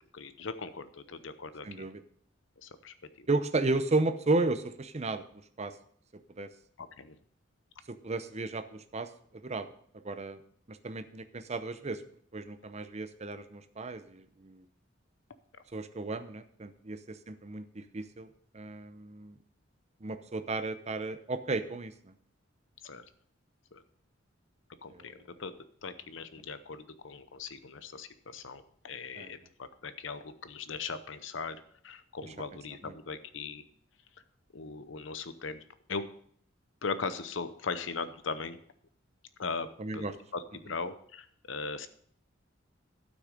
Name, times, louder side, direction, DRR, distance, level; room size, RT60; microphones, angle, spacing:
voice 1, 0.0-1.9 2.6-3.3 6.8-7.2 22.8-23.0 23.7-23.8 24.8-25.5 25.8-33.6 34.5-35.6 35.9-36.1 36.8-38.6 39.4-41.9, left 4 dB, 70° left, 12 dB, 0.8 m, -39 dB
voice 2, 1.6-2.0 3.3-5.2 5.6-5.7 6.4-6.5 7.9-9.1 9.4-9.7 10.0-10.4 10.7-12.0 12.3-14.6 15.7-18.3 18.5-19.4 20.0-22.1 24.9-25.1 29.2-29.3 32.8-32.9 39.8-40.1, right 2 dB, 35° right, 10 dB, 0.7 m, -33 dB
12.0 x 6.2 x 5.1 m, 0.62 s
head